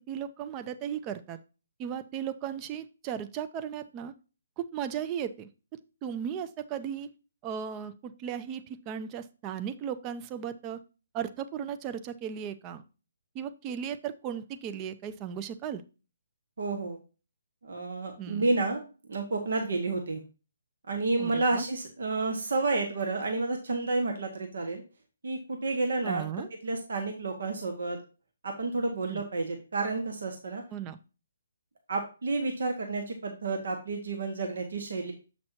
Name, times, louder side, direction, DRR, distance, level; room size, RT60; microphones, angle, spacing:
voice 1, 0.1-1.4 1.8-4.1 4.6-5.5 6.0-7.1 7.4-10.8 11.1-12.8 13.3-15.8 18.2-18.5 21.2-21.7 26.0-26.5 29.1-29.2 30.7-31.0, right 8 dB, 25° right, 11 dB, 0.6 m, -36 dB
voice 2, 16.6-17.0 17.6-18.8 19.1-20.2 20.9-24.8 25.2-26.2 26.6-28.0 28.4-30.6 31.9-35.1, right 3 dB, 70° right, 4 dB, 1.6 m, -30 dB
7.6 x 6.1 x 2.9 m, 0.33 s
hypercardioid pair, 145°, 0 cm